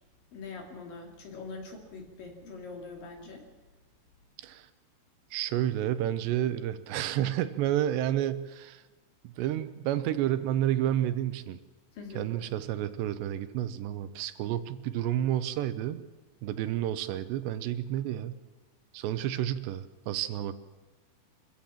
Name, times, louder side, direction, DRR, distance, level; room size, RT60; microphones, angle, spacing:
voice 1, 0.3-3.5 11.9-12.3, left 4 dB, 55° left, 2 dB, 4.0 m, -43 dB
voice 2, 5.3-8.8 9.2-11.6 12.2-16.0 16.4-18.4 18.9-20.5, right 12 dB, 85° right, 12 dB, 3.0 m, -30 dB
25.0 x 15.0 x 7.3 m, 1.2 s
omnidirectional pair, 5.0 m